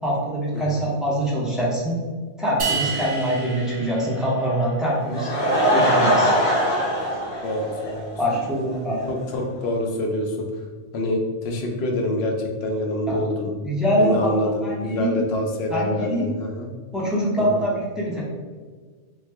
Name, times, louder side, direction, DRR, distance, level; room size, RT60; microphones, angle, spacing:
voice 1, 0.0-2.0 2.4-5.3 5.7-6.3 8.2-9.1 13.1-13.2 13.6-14.3 14.6-15.1 15.7-16.3 16.9-18.2, equal, ahead, -6 dB, 0.5 m, -24 dB
sound 1, 2.6-4.9, right 5 dB, 55° right, 0.7 m, -30 dB
Laughter / Crowd, 4.9-8.4 8.7-8.8 9.4-9.5 9.6-9.7, equal, 35° left, 0.7 m, -22 dB
voice 2, 7.4-8.2 9.1-10.5 10.9-13.5 14.0-16.7 17.4-17.6, left 1 dB, 65° left, 2 dB, 0.8 m, -26 dB
3.1 x 2.1 x 3.4 m, 1.5 s
omnidirectional pair, 1.2 m